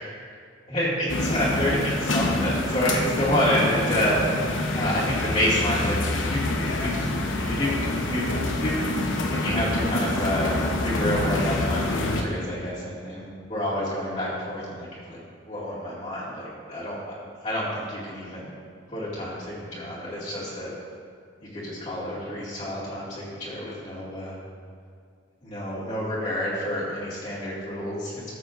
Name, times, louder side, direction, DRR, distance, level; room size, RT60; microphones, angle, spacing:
voice 1, 0.7-4.2 4.7-9.0 9.3-15.2 15.5-17.0 17.4-18.5 18.9-20.7 21.4-24.3 25.4-28.2, equal, 40° left, -10 dB, 2.3 m, -28 dB
sound 1, 1.1-12.2, left 2 dB, 80° left, 0.8 m, -26 dB
14.0 x 7.7 x 2.6 m, 2.1 s
head